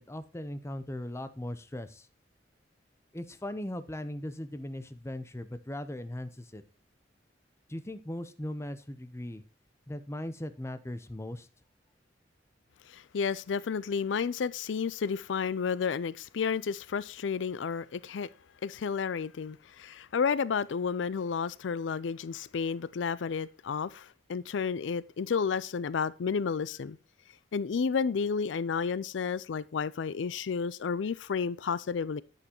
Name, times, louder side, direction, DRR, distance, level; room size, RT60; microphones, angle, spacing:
voice 1, 0.0-2.1 3.1-6.6 7.7-9.4 9.9-11.5, left 1 dB, 15° left, 0.7 m, -39 dB
voice 2, 12.9-18.3 18.6-27.0 27.5-32.2, left 6 dB, 85° left, 0.4 m, -31 dB
9.9 x 8.5 x 2.9 m
head